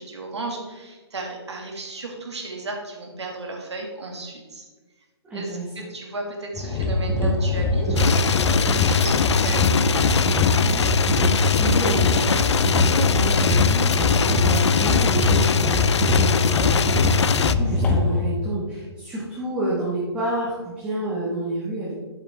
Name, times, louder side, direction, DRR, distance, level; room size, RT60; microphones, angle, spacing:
voice 1, 0.0-4.7 5.3-10.9, right 2 dB, 80° right, 1 dB, 2.2 m, -34 dB
voice 2, 5.2-5.6 11.6-21.9, right 2 dB, 5° right, -8 dB, 1.5 m, -29 dB
sound 1, 6.6-18.2, left 3 dB, 10° left, 0.8 m, -21 dB
sound 2, 8.0-17.5, left 6 dB, 85° left, 0.4 m, -23 dB
7.4 x 7.2 x 3.5 m, 1.2 s
hypercardioid pair, 150°, 14 cm